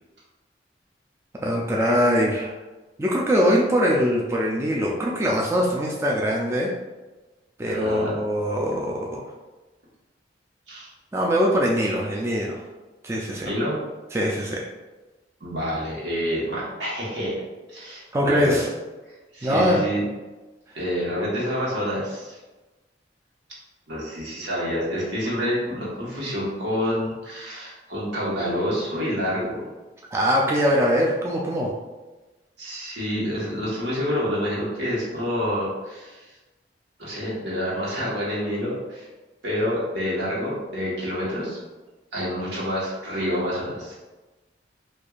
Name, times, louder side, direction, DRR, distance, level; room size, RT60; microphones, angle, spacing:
voice 1, 1.4-2.6 3.0-6.7 7.6-9.2 11.1-12.6 13.0-13.5 14.1-14.7 18.1-18.7 19.4-19.8 30.1-31.7, equal, 15° right, -3 dB, 0.3 m, -22 dB
voice 2, 7.7-8.2 10.7-10.9 13.4-13.8 15.4-17.4 17.7-18.6 19.1-20.0 20.7-22.4 23.9-29.7 32.6-36.4 37.0-39.1 39.4-41.6 42.1-44.1, equal, 85° right, -6 dB, 1.3 m, -28 dB
4.5 x 2.5 x 2.4 m, 1.2 s
head